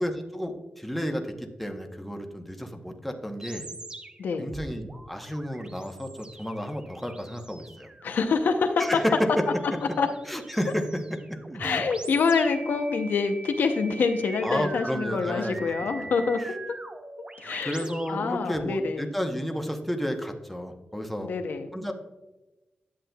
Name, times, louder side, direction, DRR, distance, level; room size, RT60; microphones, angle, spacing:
voice 1, 0.0-3.7 4.4-7.9 8.8-9.4 10.3-11.0 11.3-11.4 14.4-15.7 17.6-21.3 21.7-21.9, equal, ahead, 4 dB, 0.9 m, -31 dB
sound 1, 3.4-18.7, right 2 dB, 30° right, 0.6 m, -42 dB
voice 2, 4.2-4.5 8.0-9.0 10.0-10.1 11.6-16.4 16.7-16.8 17.4-19.1 21.2-21.7, left 4 dB, 85° left, 6 dB, 0.6 m, -26 dB
10.0 x 7.3 x 2.3 m, 1.1 s
cardioid pair, 80°, 3 cm